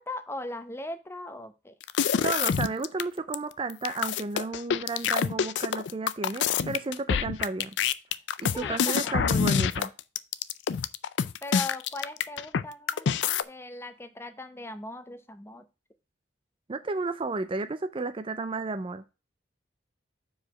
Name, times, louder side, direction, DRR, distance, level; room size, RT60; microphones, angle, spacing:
voice 1, 0.0-1.7 8.5-9.4 11.4-13.1 13.5-15.6, left 2 dB, 15° left, 0.8 m, -39 dB
sound 1, 1.8-3.0 3.3-3.4 3.7-12.6 12.9-13.4, left 7 dB, 70° left, 0.4 m, -26 dB
voice 2, 2.2-7.7 8.4-9.9 16.7-19.1, right 3 dB, 30° right, 0.4 m, -32 dB
4.9 x 4.8 x 6.1 m
head